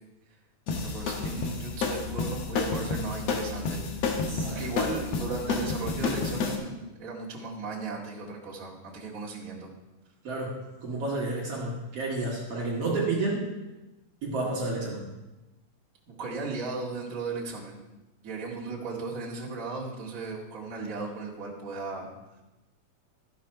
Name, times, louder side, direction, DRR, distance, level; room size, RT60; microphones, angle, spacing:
sound 1, 0.7-6.4, left 11 dB, 90° left, 2.2 m, -42 dB
sound 2, 0.7-6.6, left 4 dB, 65° left, 2.2 m, -30 dB
voice 1, 0.7-9.7 16.1-17.8 18.2-22.1, right 4 dB, 30° right, -5 dB, 2.3 m, -36 dB
voice 2, 4.3-4.6 10.2-13.5 14.2-15.1, right 2 dB, 60° right, -3 dB, 2.6 m, -30 dB
13.5 x 6.4 x 5.7 m, 1.1 s
omnidirectional pair, 3.3 m